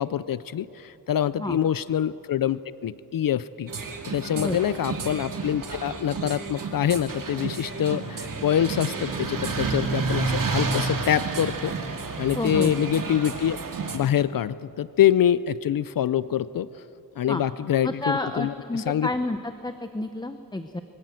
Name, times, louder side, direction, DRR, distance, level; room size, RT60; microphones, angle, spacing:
voice 1, 0.0-3.7 4.1-11.7 12.2-13.6 13.9-16.7 17.2-19.1, left 10 dB, 65° left, 16 dB, 0.5 m, -25 dB
sound 1, 3.7-14.0, right 4 dB, 65° right, 2.5 m, -30 dB
voice 2, 12.4-12.7 17.3-17.4 17.8-20.8, left 2 dB, 10° left, 8 dB, 0.7 m, -30 dB
25.0 x 22.5 x 7.6 m, 3.0 s
wide cardioid pair, 150°, 36 cm